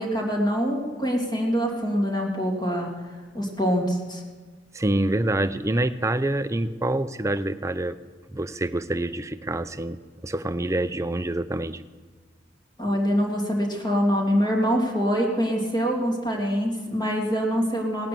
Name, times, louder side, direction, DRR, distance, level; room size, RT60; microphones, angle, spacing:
voice 1, 0.0-2.9 3.3-4.2 12.8-18.1, equal, 20° left, -1 dB, 2.6 m, -24 dB
voice 2, 4.7-8.0 8.3-10.0 10.2-11.8, right 1 dB, 15° right, 12 dB, 0.5 m, -26 dB
18.0 x 9.1 x 6.9 m, 1.4 s
head